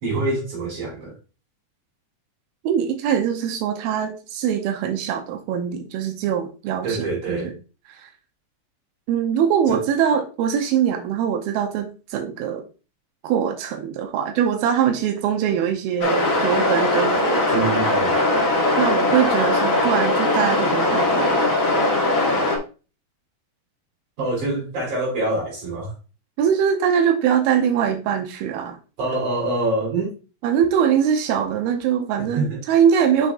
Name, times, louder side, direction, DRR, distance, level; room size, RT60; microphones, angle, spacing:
voice 1, 0.0-1.2 6.8-7.5 9.7-9.8 17.5-18.2 24.2-25.9 29.0-30.2 32.4-32.6, right 2 dB, 55° right, 4.3 m, -25 dB
voice 2, 2.6-7.5 7.9-8.1 9.1-12.7 13.2-17.8 18.1-18.4 18.8-21.4 26.4-28.8 30.4-33.3, right 8 dB, 85° right, 2.6 m, -22 dB
sound 1, 16.0-22.6, left 2 dB, 60° left, 0.8 m, -20 dB
6.7 x 6.0 x 2.4 m
omnidirectional pair, 4.3 m